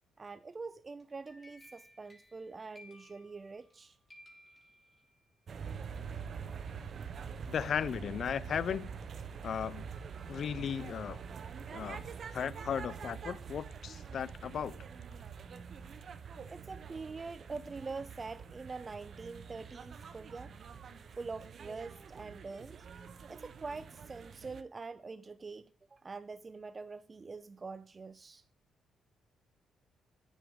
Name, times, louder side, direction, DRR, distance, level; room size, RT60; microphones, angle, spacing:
voice 1, 0.2-4.0 16.5-20.5 21.2-22.9 23.3-28.4, right 4 dB, 30° right, 0.4 m, -44 dB
sound 1, 1.0-3.8 4.1-5.4, left 1 dB, 20° left, 2.8 m, -59 dB
sound 2, 5.5-24.6, right 6 dB, 50° right, 0.8 m, -45 dB
voice 2, 7.5-8.9 9.4-9.9 10.3-11.2 11.7-12.1 12.3-14.8, left 8 dB, 55° left, 0.5 m, -36 dB
9.3 x 7.3 x 5.0 m
cardioid pair, 90°, 0 cm